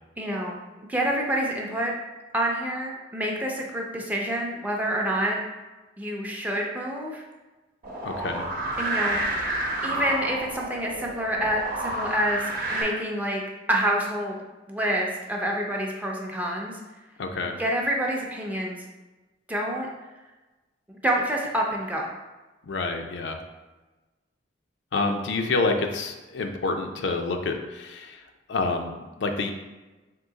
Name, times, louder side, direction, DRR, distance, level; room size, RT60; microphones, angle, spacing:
voice 1, 0.2-0.6 0.9-1.9 2.3-5.4 6.0-7.2 8.8-9.2 9.8-13.4 13.7-14.3 14.7-16.8 17.6-18.8 19.5-19.9 21.0-22.1, right 1 dB, 10° right, -2 dB, 0.5 m, -27 dB
sound 1, 7.8-12.8, right 1 dB, 50° right, 0.8 m, -30 dB
voice 2, 8.0-8.4 17.2-17.6 22.6-23.4 24.9-28.2 28.5-29.5, left 3 dB, 75° left, 5 dB, 0.4 m, -28 dB
3.7 x 2.8 x 3.9 m, 1.2 s
head